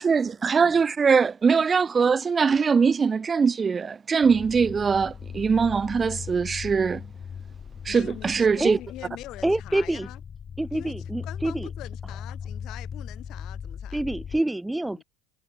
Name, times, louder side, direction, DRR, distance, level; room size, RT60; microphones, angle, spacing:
voice 1, 0.0-7.1 7.9-8.8, right 5 dB, 25° right, 0.6 m, -22 dB
sound 1, 4.2-14.4, left 7 dB, 30° left, 3.8 m, -39 dB
voice 2, 7.9-10.2 10.7-14.0 14.8-15.0, left 16 dB, 55° left, 6.0 m, -43 dB
voice 3, 9.4-10.1 10.6-11.7 13.9-15.0, right 1 dB, 5° right, 3.5 m, -26 dB
supercardioid pair, 105°, 0 cm